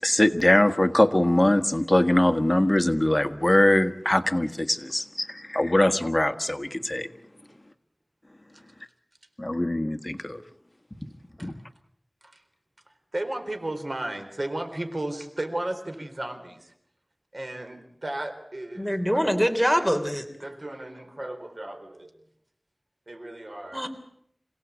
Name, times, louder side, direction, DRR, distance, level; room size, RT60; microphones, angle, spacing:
voice 1, 0.0-7.1 9.4-10.4 11.4-11.5, left 1 dB, 30° left, 8 dB, 1.6 m, -22 dB
voice 2, 13.1-16.7 17.3-19.3 20.4-22.1 23.1-23.9, right 1 dB, 60° right, 7 dB, 3.9 m, -34 dB
voice 3, 18.8-20.3 23.7-23.9, equal, 5° right, 7 dB, 3.4 m, -24 dB
27.5 x 17.5 x 8.3 m, 0.73 s
wide cardioid pair, 45°, 0 cm